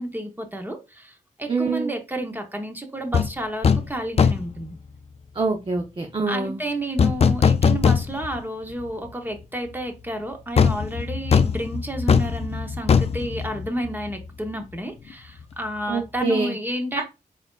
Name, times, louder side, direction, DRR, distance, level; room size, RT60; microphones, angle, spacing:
voice 1, 0.0-4.8 6.3-17.0, right 1 dB, 15° right, 0.9 m, -31 dB
voice 2, 1.5-1.9 5.3-6.6 15.9-16.6, right 3 dB, 35° right, 0.7 m, -25 dB
sound 1, 3.1-3.3 3.6-3.9 4.2-4.6 7.0-8.4 8.8-8.9 10.6-14.2 14.5-14.6, left 6 dB, 45° left, 0.4 m, -20 dB
4.2 x 3.9 x 2.3 m
wide cardioid pair, 85°, 14 cm